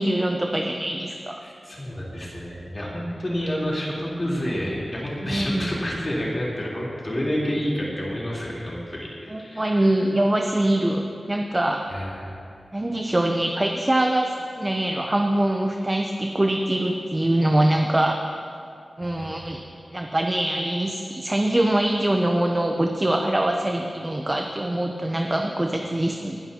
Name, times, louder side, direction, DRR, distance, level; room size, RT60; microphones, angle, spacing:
voice 1, 0.0-1.4 5.2-5.7 9.3-11.8 12.7-18.2 19.0-19.6 19.9-26.4, right 1 dB, 20° right, 2 dB, 0.7 m, -23 dB
voice 2, 1.4-10.0 11.9-12.4 19.2-19.5, equal, 35° left, -6 dB, 3.6 m, -29 dB
20.5 x 11.5 x 2.9 m, 2.5 s
wide cardioid pair, 100°, 0 cm